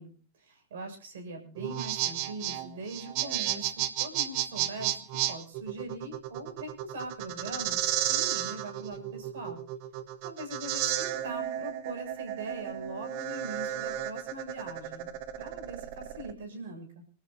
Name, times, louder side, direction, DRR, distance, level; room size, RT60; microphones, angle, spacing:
voice 1, 0.0-9.6 10.2-15.1 15.4-17.0, right 2 dB, 60° right, 5 dB, 6.8 m, -42 dB
sound 1, 1.6-16.3, right 13 dB, 45° right, 1.5 m, -33 dB
27.5 x 13.0 x 2.8 m, 0.39 s
figure-of-eight pair, 90°, 0 cm